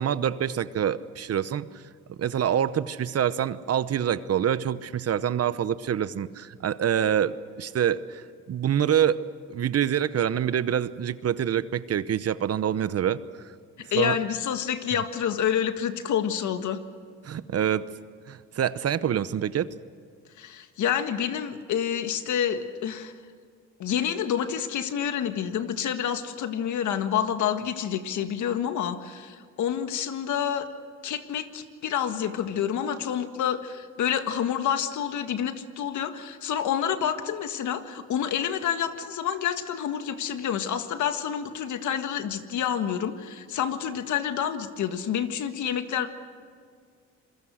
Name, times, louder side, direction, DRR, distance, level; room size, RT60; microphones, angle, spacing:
voice 1, 0.0-1.7 2.2-9.2 9.5-13.2 14.0-14.1 17.2-17.9 18.3-19.7, right 9 dB, 55° right, 15 dB, 1.0 m, -26 dB
voice 2, 13.9-16.8 20.4-23.1 23.8-30.7 31.0-46.1, left 9 dB, 75° left, 8 dB, 1.7 m, -28 dB
27.0 x 22.0 x 6.4 m, 2.1 s
cardioid pair, 90°, 30 cm